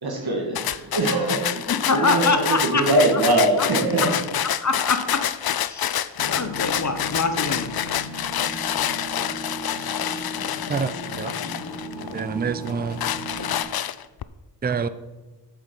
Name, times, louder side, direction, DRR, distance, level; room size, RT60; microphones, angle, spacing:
voice 1, 0.0-4.1, right 2 dB, 55° right, 0 dB, 1.9 m, -22 dB
sound 1, 0.6-12.2 12.7-14.2, left 10 dB, 55° left, 0.5 m, -27 dB
voice 2, 1.7-2.9 3.1-3.2 3.6-3.7 4.0-4.1 4.6-5.2 5.7-7.7, left 4 dB, 40° left, 8 dB, 1.0 m, -24 dB
sound 2, 6.1-13.6, equal, 70° left, 2.2 m, -36 dB
voice 3, 10.7-11.3 12.1-13.0 14.6-14.9, right 5 dB, 20° right, 13 dB, 0.5 m, -27 dB
8.0 x 7.2 x 5.4 m, 1.2 s
cardioid pair, 55°, 44 cm